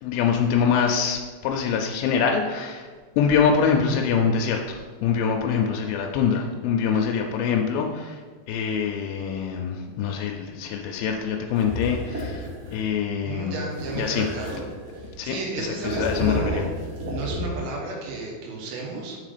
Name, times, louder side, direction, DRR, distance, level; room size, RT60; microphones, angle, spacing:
voice 1, 0.0-2.9 3.2-8.2 8.5-13.6 14.0-14.3 15.2-16.7, left 6 dB, 90° left, 2 dB, 2.4 m, -24 dB
sound 1, 11.6-12.9 13.7-15.2 15.7-17.7, equal, 60° right, 1.5 m, -32 dB
voice 2, 13.2-14.6 14.9-16.7 17.1-19.2, right 3 dB, 90° right, -1 dB, 3.0 m, -33 dB
6.1 x 3.8 x 5.0 m, 1.5 s
omnidirectional pair, 4.2 m